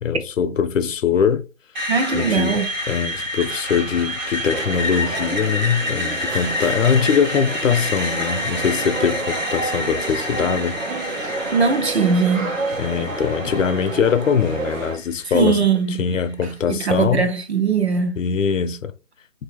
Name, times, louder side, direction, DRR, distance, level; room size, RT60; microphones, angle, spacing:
voice 1, 0.0-1.4 2.1-2.6 2.9-11.3 12.8-15.6 16.0-17.2 18.2-18.9, left 7 dB, 80° left, 0.6 m, -22 dB
Screech, 1.8-15.7, left 1 dB, 35° right, 1.0 m, -29 dB
voice 2, 1.9-2.7 11.2-12.5 15.3-16.0 16.7-18.2, right 5 dB, 60° right, 0.7 m, -20 dB
sound 1, 4.5-15.0, right 3 dB, 85° right, 1.1 m, -30 dB
3.3 x 2.7 x 3.1 m
hypercardioid pair, 175°, 38 cm